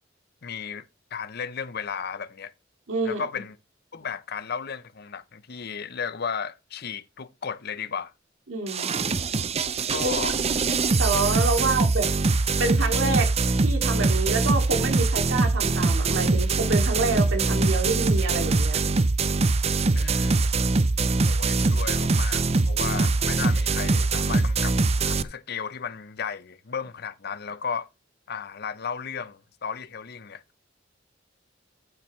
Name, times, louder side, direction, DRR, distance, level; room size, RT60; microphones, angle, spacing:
voice 1, 0.4-2.5 3.0-3.5 3.9-8.1 9.9-10.4 11.6-11.7 19.9-20.4 21.2-27.9 28.3-30.4, left 6 dB, 55° left, 0.7 m, -34 dB
voice 2, 2.9-3.2 8.5-8.9 10.0-10.1 11.0-12.1 12.6-18.8, right 3 dB, 70° right, 2.6 m, -27 dB
sound 1, 8.7-25.2, right 3 dB, 30° right, 0.6 m, -23 dB
13.5 x 7.3 x 3.2 m
head